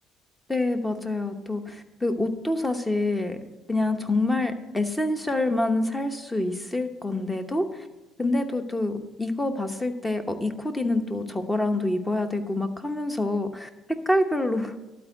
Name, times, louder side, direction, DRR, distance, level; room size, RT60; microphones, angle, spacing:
voice 1, 0.5-3.4 3.7-7.9 8.2-13.7 14.1-14.7, left 2 dB, 10° left, 7 dB, 0.9 m, -26 dB
12.0 x 4.5 x 7.7 m, 1.0 s
cardioid pair, 105°, 0 cm